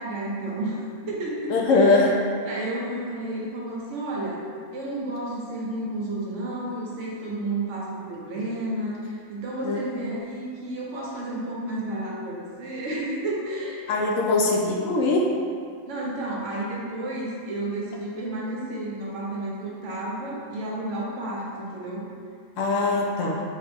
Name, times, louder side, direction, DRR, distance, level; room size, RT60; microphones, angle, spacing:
voice 1, 0.0-2.1 2.4-4.4 4.7-14.5 15.9-22.1, right 1 dB, 65° right, -4 dB, 1.1 m, -32 dB
voice 2, 1.5-2.1 9.6-9.8 13.9-15.3 22.6-23.4, left 3 dB, 70° left, -1 dB, 1.0 m, -21 dB
4.5 x 3.2 x 3.4 m, 2.3 s
omnidirectional pair, 1.4 m